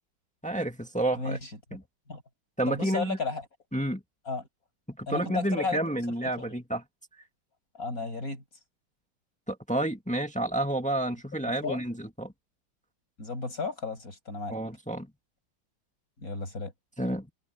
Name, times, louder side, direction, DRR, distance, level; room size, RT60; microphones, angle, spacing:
voice 1, 0.4-1.4 1.7-1.8 2.6-3.2 3.7-4.0 4.9-6.8 9.5-12.3 14.5-15.1 17.0-17.3, right 1 dB, 5° left, 1.7 m, -30 dB
voice 2, 1.1-1.5 2.1-2.2 2.7-3.4 4.3-4.5 5.1-5.8 6.4-6.5 7.7-8.4 11.6-11.8 13.2-14.6 16.2-16.7, left 4 dB, 40° left, 8.1 m, -33 dB
omnidirectional pair, 2.3 m